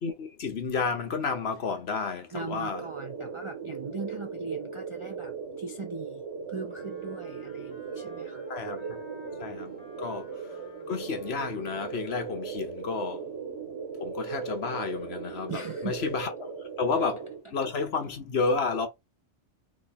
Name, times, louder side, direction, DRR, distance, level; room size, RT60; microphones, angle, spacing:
voice 1, 0.0-2.9 8.5-9.0 9.4-10.6 10.9-13.3 14.0-18.9, left 4 dB, 60° left, 1.2 m, -31 dB
voice 2, 2.3-8.5 15.5-16.0 16.9-17.0, right 4 dB, 45° right, 0.4 m, -39 dB
sound 1, 2.7-17.4, right 5 dB, 75° right, 2.3 m, -38 dB
Wind instrument woodwind instrument, 6.6-12.0, left 2 dB, 35° left, 1.7 m, -52 dB
3.8 x 3.3 x 4.0 m
omnidirectional pair, 1.2 m